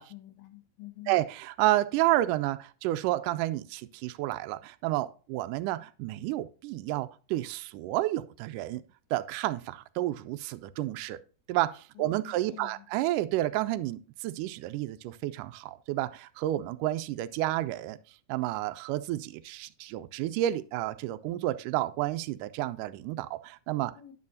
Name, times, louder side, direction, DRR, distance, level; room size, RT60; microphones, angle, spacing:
voice 1, 0.1-1.2 12.0-12.9 24.0-24.1, left 14 dB, 85° left, 3.1 m, -48 dB
voice 2, 1.1-8.8 9.1-11.2 11.5-18.0 18.3-23.9, right 15 dB, 85° right, 1.8 m, -30 dB
9.6 x 8.5 x 2.7 m
omnidirectional pair, 4.1 m